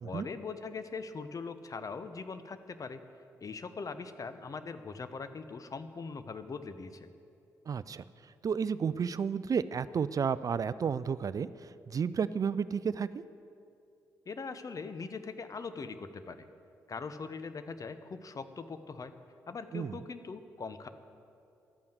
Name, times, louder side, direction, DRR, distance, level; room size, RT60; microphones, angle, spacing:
voice 1, 0.0-3.0 3.4-7.1 14.3-16.5 16.9-19.1 19.5-20.9, left 4 dB, 40° left, 11 dB, 0.9 m, -41 dB
voice 2, 7.7-8.0 8.4-13.2 19.7-20.0, right 6 dB, 40° right, 16 dB, 0.4 m, -32 dB
12.5 x 8.6 x 7.7 m, 2.6 s
hypercardioid pair, 40°, 9 cm